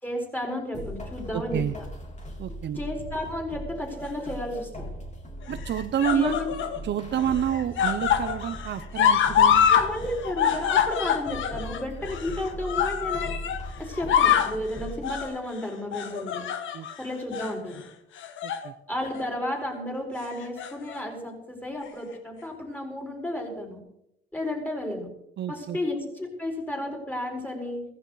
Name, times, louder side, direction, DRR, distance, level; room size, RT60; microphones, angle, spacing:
voice 1, 0.0-1.6 2.8-4.9 6.1-6.5 9.7-13.4 13.8-16.5 17.0-17.8 18.9-23.8 24.3-25.1 25.5-27.8, left 1 dB, 10° left, 1 dB, 4.9 m, -32 dB
sound 1, 0.7-15.3, equal, 35° left, 3.7 m, -39 dB
voice 2, 1.3-1.8 2.4-2.8 5.5-6.4 6.8-9.7 16.7-16.9 18.4-18.7 25.4-25.8, right 10 dB, 60° right, 11 dB, 0.8 m, -29 dB
sound 2, 4.0-4.6 5.5-6.8 7.1-9.9 10.1-13.6 13.9-14.6 15.0-15.3 15.9-16.9 17.3-17.5 18.2-18.7 19.0-19.2 20.3-21.0 21.9-22.0, left 8 dB, 75° left, 1.4 m, -25 dB
15.5 x 15.0 x 4.1 m, 0.81 s
cardioid pair, 90°, 20 cm